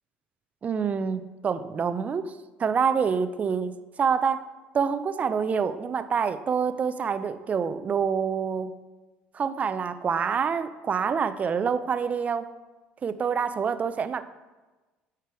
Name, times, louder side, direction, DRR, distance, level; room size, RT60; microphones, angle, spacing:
voice 1, 0.6-4.4 4.7-8.7 9.3-12.5 13.0-14.2, right 6 dB, 35° right, 12 dB, 0.5 m, -27 dB
8.1 x 4.5 x 4.8 m, 1.2 s
supercardioid pair, 85°, 4 cm